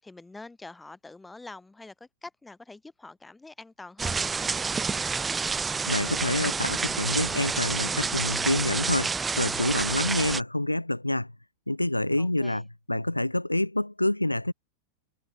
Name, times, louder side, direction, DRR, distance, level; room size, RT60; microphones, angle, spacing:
voice 1, 0.0-5.1 12.2-12.7, left 3 dB, 10° left, 5.4 m, -46 dB
sound 1, 4.0-10.4, right 5 dB, 15° right, 0.7 m, -29 dB
voice 2, 5.9-11.3 11.7-14.5, left 1 dB, 85° left, 1.3 m, -27 dB
figure-of-eight pair, 90°, 0 cm